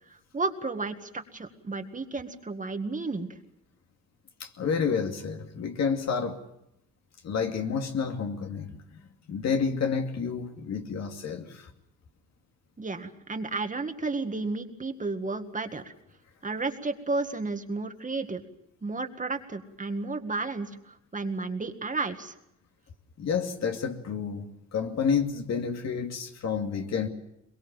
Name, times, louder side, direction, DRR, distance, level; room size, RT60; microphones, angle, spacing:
voice 1, 0.3-3.3 12.8-15.9 16.4-18.4 18.8-22.3, right 3 dB, 25° right, 7 dB, 1.9 m, -32 dB
voice 2, 4.4-6.4 7.2-8.8 9.3-11.7 23.2-27.1, left 6 dB, 60° left, 4 dB, 2.5 m, -29 dB
22.5 x 22.0 x 7.3 m, 0.80 s
cardioid pair, 90°, 30 cm